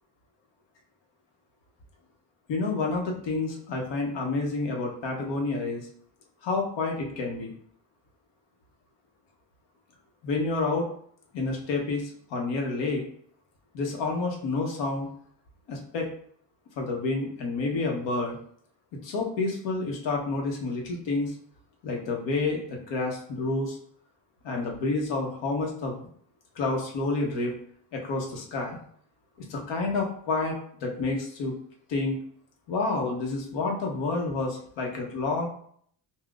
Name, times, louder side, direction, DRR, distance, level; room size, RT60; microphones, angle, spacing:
voice 1, 2.5-5.9 6.4-7.5 10.2-10.9 11.3-13.0 13.7-15.1 15.7-16.1 16.8-18.4 19.0-21.3 21.8-23.8 24.4-26.1 26.5-27.5 27.9-28.8 29.5-31.5 31.9-32.2 32.7-35.5, left 3 dB, 80° left, 0 dB, 1.1 m, -29 dB
5.6 x 2.3 x 2.4 m, 0.63 s
cardioid pair, 170°, 43 cm